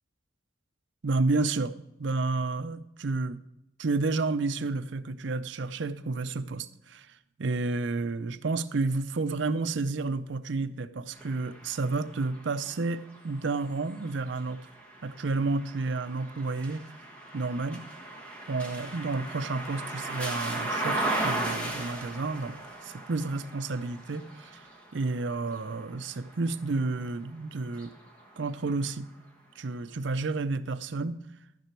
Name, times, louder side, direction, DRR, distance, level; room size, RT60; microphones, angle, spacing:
voice 1, 1.0-1.7 2.0-3.4 3.8-7.1 7.4-14.6 15.0-16.9 17.3-17.8 18.5-22.6 22.8-24.5 24.9-27.9 28.4-29.1 29.6-31.2, right 3 dB, 65° right, 11 dB, 0.6 m, -30 dB
sound 1, 11.1-27.1 27.6-28.8, right 2 dB, 5° left, 1.4 m, -37 dB
13.5 x 6.1 x 4.5 m, 0.88 s
head